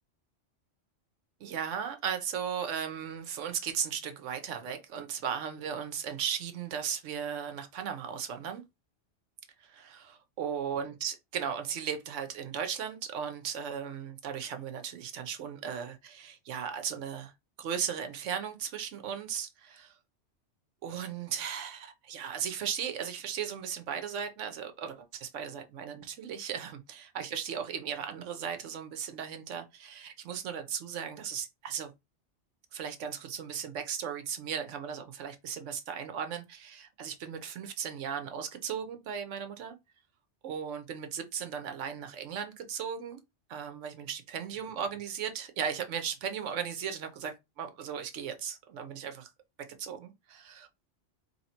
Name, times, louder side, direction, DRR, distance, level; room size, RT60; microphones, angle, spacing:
voice 1, 1.4-8.6 9.6-17.3 17.6-20.0 20.8-31.9 32.7-39.8 40.4-43.2 43.5-49.3 49.8-50.7, right 8 dB, 80° right, 1.1 m, -36 dB
3.1 x 2.8 x 4.3 m
omnidirectional pair, 1.2 m